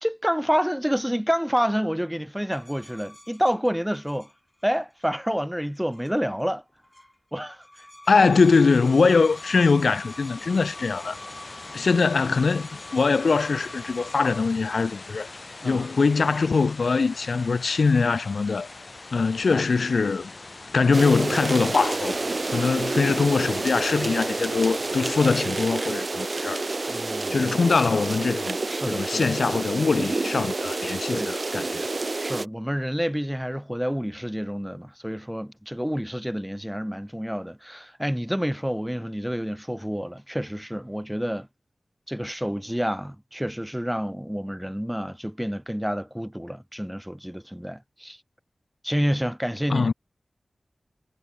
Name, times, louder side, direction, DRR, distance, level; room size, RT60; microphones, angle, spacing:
voice 1, 0.0-4.3 4.6-6.6 7.3-7.6 15.6-15.9 19.5-19.6 23.1-23.2 26.9-27.5 28.7-29.3 31.1-31.3 32.2-41.5 42.1-48.2 48.8-49.9, equal, 5° right, 2.3 m, -28 dB
sound 1, 2.5-5.1 5.8-6.4 6.7-7.2 7.5-14.4, left 1 dB, 15° left, 3.3 m, -46 dB
voice 2, 8.1-11.2 11.7-15.3 15.6-18.7 19.1-20.3 20.7-22.2 22.5-26.7 27.3-28.6 28.9-31.9 49.7-49.9, left 4 dB, 80° left, 0.9 m, -22 dB
sound 2, 8.4-25.4, left 3 dB, 50° left, 7.6 m, -42 dB
sound 3, 20.9-32.4, right 3 dB, 45° right, 0.4 m, -29 dB
wide cardioid pair, 75°, 0 cm